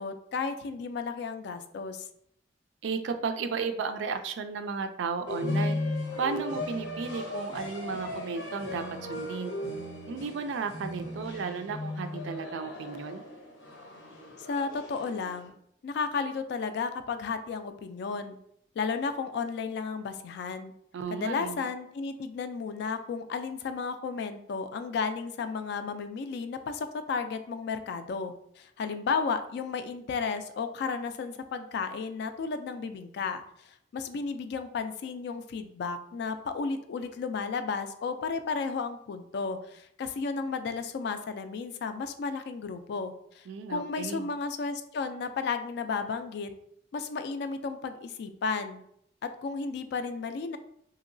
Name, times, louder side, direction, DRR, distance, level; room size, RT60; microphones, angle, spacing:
voice 1, 0.0-2.1 14.5-15.5 15.8-18.4 18.8-20.7 21.1-46.5 46.9-48.8 49.2-50.6, left 5 dB, 60° left, 9 dB, 0.3 m, -33 dB
voice 2, 2.8-5.8 6.1-8.8 9.1-9.5 10.1-13.2 20.9-21.7 43.5-44.3, right 5 dB, 75° right, 8 dB, 0.3 m, -34 dB
sound 1, 5.3-15.5, left 2 dB, 90° left, 0.8 m, -36 dB
3.0 x 2.7 x 2.6 m, 0.71 s
head